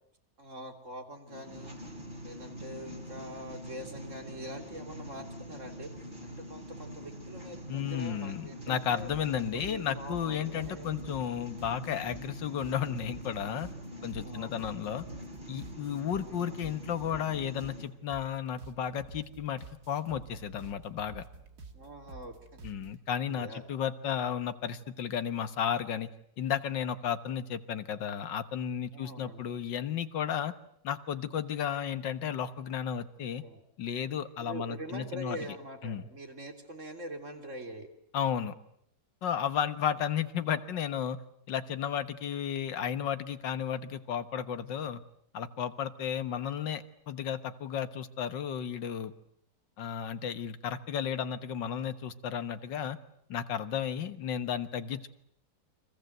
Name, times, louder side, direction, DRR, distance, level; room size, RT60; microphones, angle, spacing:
voice 1, 0.4-1.7 2.2-5.9 6.2-9.1 9.5-10.9 14.0-14.8 16.2-16.6 21.7-22.7 23.3-23.6 28.9-29.4 33.2-33.6 34.4-37.9, right 1 dB, 45° right, 4 dB, 3.7 m, -44 dB
sound 1, 1.3-17.8, equal, 25° right, 4.7 m, -44 dB
voice 2, 7.7-13.7 14.0-15.0 15.5-21.3 22.6-26.1 26.4-30.5 30.8-33.4 33.8-35.4 35.8-36.0 38.1-38.5 39.2-41.2 41.5-45.0 45.3-49.1 49.8-53.0 53.3-55.1, left 8 dB, 90° left, 11 dB, 2.0 m, -33 dB
Collide (loopable), 9.0-22.9, right 3 dB, 60° right, 2.4 m, -51 dB
30.0 x 24.0 x 8.0 m, 0.71 s
omnidirectional pair, 1.9 m